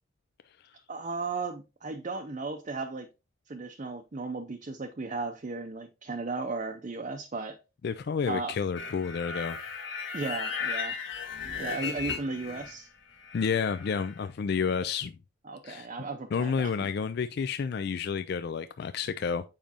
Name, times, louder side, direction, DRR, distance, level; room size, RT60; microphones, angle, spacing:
voice 1, 0.9-3.1 3.5-7.6 8.3-8.6 10.1-11.0 11.6-12.9 15.5-16.7, right 3 dB, 35° right, 0.5 m, -35 dB
voice 2, 7.8-9.6 13.3-15.2 15.6-15.9 16.3-19.4, left 6 dB, 55° left, 0.3 m, -30 dB
sound 1, 8.7-12.8 13.1-14.2, left 5 dB, 70° left, 1.5 m, -36 dB
7.3 x 5.1 x 2.8 m
head